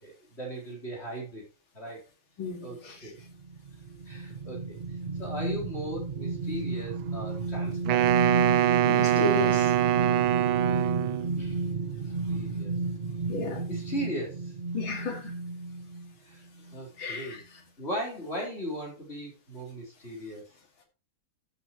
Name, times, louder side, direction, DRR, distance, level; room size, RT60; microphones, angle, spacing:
voice 1, 0.0-1.4 1.7-2.0 2.6-3.2 4.1-4.8 5.2-8.1 11.4-11.6 12.3-12.7 13.7-14.5 16.3-16.4 16.7-17.4 17.8-20.4, equal, 30° left, -2 dB, 4.1 m, -37 dB
voice 2, 2.4-3.1 8.9-9.7 13.3-13.6 14.7-15.3 17.0-17.4, left 3 dB, 70° left, 3 dB, 3.2 m, -33 dB
sound 1, 3.2-16.1 16.6-16.7, right 3 dB, 35° right, 0.7 m, -32 dB
Wind instrument woodwind instrument, 7.9-11.3, right 12 dB, 75° right, 1.4 m, -24 dB
14.5 x 8.3 x 3.0 m, 0.31 s
omnidirectional pair, 2.3 m